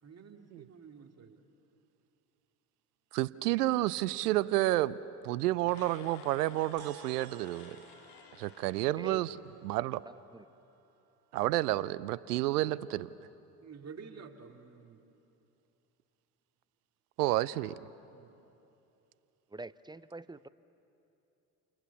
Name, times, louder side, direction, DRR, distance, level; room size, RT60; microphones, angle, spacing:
voice 1, 0.0-1.4 13.6-15.0 18.1-18.4, right 6 dB, 35° right, 3 dB, 2.7 m, -50 dB
voice 2, 3.1-5.0 5.2-7.8 8.4-9.3 9.6-10.0 11.3-13.1 17.2-17.7, right 16 dB, 80° right, 18 dB, 0.6 m, -30 dB
sound 1, 5.6-9.8, left 8 dB, 80° left, 2.0 m, -54 dB
sound 2, 6.8-11.4, right 12 dB, 50° right, 1.4 m, -57 dB
voice 3, 8.9-9.3 10.0-10.5 19.5-20.5, right 2 dB, 10° right, 16 dB, 0.6 m, -45 dB
29.0 x 28.5 x 7.2 m, 2.9 s
hypercardioid pair, 65°, 46 cm